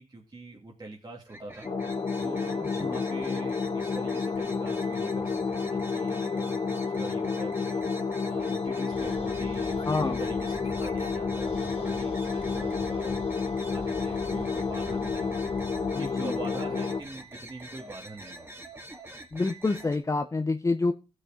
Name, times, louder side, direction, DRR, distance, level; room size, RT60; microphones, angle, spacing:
voice 1, 0.0-1.7 2.2-13.1 13.5-15.5 16.0-18.6, right 2 dB, 35° right, -2 dB, 2.5 m, -43 dB
sound 1, 1.2-20.0, right 1 dB, 20° right, 2.2 m, -45 dB
sound 2, 1.6-17.0, left 5 dB, 45° left, 1.3 m, -30 dB
sound 3, 8.9-17.4, left 3 dB, 65° left, 3.2 m, -44 dB
voice 2, 9.9-10.2 15.9-16.3 19.3-20.9, left 3 dB, 25° left, 6 dB, 0.8 m, -27 dB
15.5 x 6.4 x 3.7 m, 0.32 s
cardioid pair, 60°, 12 cm